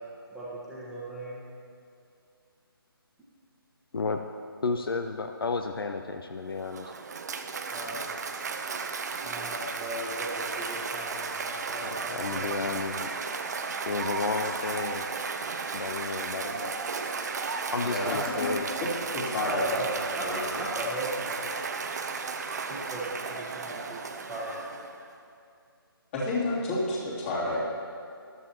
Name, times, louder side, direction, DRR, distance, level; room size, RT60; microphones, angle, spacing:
voice 1, 0.3-1.4 7.7-8.1 9.2-12.8 19.5-20.2 20.6-21.4 22.7-24.0 24.3-24.5, right 1 dB, ahead, -10 dB, 1.3 m, -37 dB
voice 2, 4.6-6.9 11.8-13.1 13.9-15.0 15.7-16.8 17.7-18.7, left 4 dB, 65° left, 6 dB, 0.6 m, -32 dB
Cheering / Applause, 6.5-25.1, right 5 dB, 45° right, 0.7 m, -34 dB
voice 3, 17.8-18.5 19.1-19.8 20.2-20.4 26.1-27.6, left 2 dB, 30° left, -7 dB, 3.0 m, -30 dB
14.0 x 12.5 x 2.9 m, 2.4 s
figure-of-eight pair, 150°, 13 cm